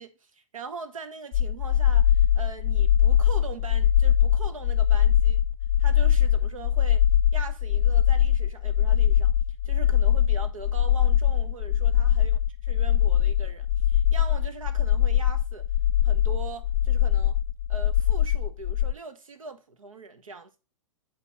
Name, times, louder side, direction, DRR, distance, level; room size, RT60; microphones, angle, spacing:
voice 1, 0.0-5.4 5.8-7.0 7.3-9.3 9.6-12.3 12.7-15.7 16.0-17.4 17.7-20.6, right 5 dB, 85° right, 1.2 m, -41 dB
sound 1, 1.3-18.9, left 10 dB, 50° left, 0.5 m, -22 dB
9.2 x 3.4 x 4.2 m
hypercardioid pair, 110°, 17 cm